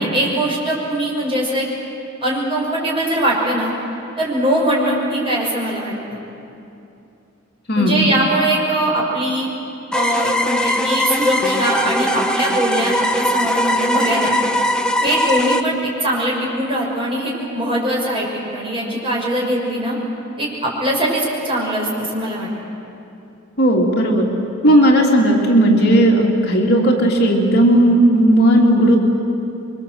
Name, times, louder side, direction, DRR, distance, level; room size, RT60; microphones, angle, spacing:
voice 1, 0.0-1.7 2.2-3.7 4.2-6.2 7.7-9.5 9.9-14.3 15.0-20.0 20.4-22.5, right 1 dB, 25° right, -4 dB, 6.4 m, -21 dB
voice 2, 7.7-8.0 23.6-24.3 24.6-29.0, right 1 dB, 55° left, -1 dB, 3.0 m, -14 dB
sound 1, 9.9-15.6, equal, 5° left, 0.8 m, -20 dB
27.5 x 23.5 x 8.0 m, 2.7 s
head